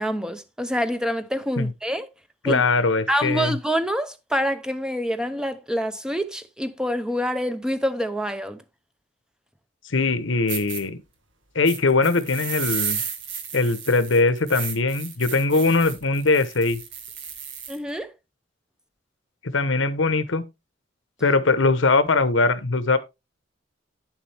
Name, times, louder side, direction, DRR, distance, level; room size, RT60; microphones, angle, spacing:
voice 1, 0.0-2.1 2.4-2.6 3.1-8.6 17.7-18.1, equal, 5° right, 0.7 m, -26 dB
voice 2, 2.4-3.5 9.8-11.0 11.5-13.0 13.5-16.8 19.4-20.4 21.2-23.0, left 3 dB, 80° left, 1.0 m, -21 dB
sound 1, 10.0-10.1 10.5-10.8 11.6-17.8, right 7 dB, 75° right, 1.8 m, -33 dB
9.8 x 7.4 x 3.4 m
head